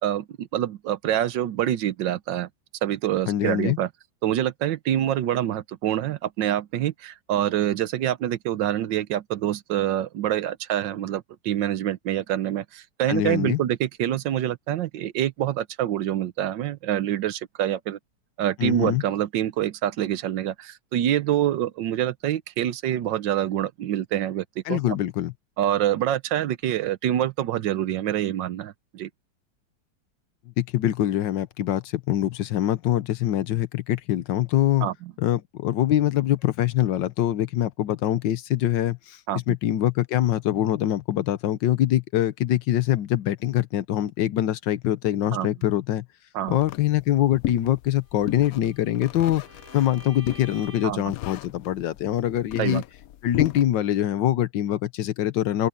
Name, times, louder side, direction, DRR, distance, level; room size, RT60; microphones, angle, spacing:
voice 1, 0.0-2.5 2.8-3.9 4.2-18.0 18.4-24.8 25.6-29.1 34.8-35.1 39.3-39.6 45.3-45.5 46.3-46.6 50.8-51.0 52.6-52.8, right 12 dB, 85° right, 1.5 m, -26 dB
voice 2, 3.3-3.8 13.1-13.6 18.6-19.0 24.7-25.3 30.6-34.9 35.2-46.0 46.5-49.4 49.7-52.8 53.2-55.7, left 12 dB, 90° left, 1.6 m, -24 dB
sound 1, 46.5-53.6, left 13 dB, 70° left, 0.9 m, -36 dB
Bowed string instrument, 48.1-51.1, right 2 dB, 50° right, 3.4 m, -48 dB
open air
omnidirectional pair, 1.9 m